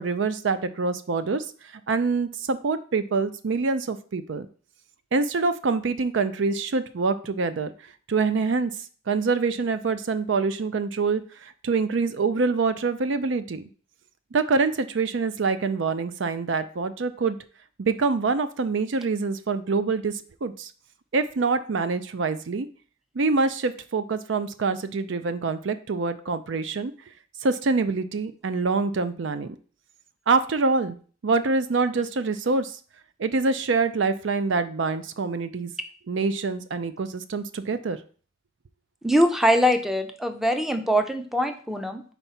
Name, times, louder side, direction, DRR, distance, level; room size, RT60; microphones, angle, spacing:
voice 1, 0.0-1.5 1.9-4.5 5.1-7.7 8.1-8.7 9.1-13.6 14.3-17.4 17.8-20.7 21.1-22.7 23.2-26.9 27.4-29.5 30.3-31.0 31.2-32.7 33.2-35.7 36.1-38.0, right 4 dB, 65° right, 11 dB, 0.5 m, -25 dB
voice 2, 39.0-42.0, equal, ahead, 7 dB, 0.5 m, -22 dB
4.5 x 4.1 x 5.7 m, 0.41 s
head